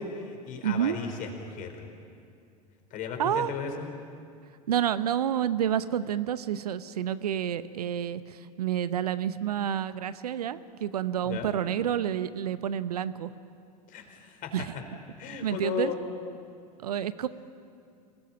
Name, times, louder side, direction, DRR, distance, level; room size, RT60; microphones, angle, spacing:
voice 1, 0.0-1.9 2.9-3.9 11.3-11.5 13.9-14.5 15.2-16.0, left 7 dB, 40° left, 4 dB, 4.5 m, -35 dB
voice 2, 0.6-1.0 3.2-3.5 4.7-13.3 14.5-14.7 15.3-15.9 16.8-17.3, right 10 dB, 70° right, 15 dB, 0.9 m, -29 dB
27.0 x 19.5 x 9.1 m, 2.5 s
figure-of-eight pair, 80°, 21 cm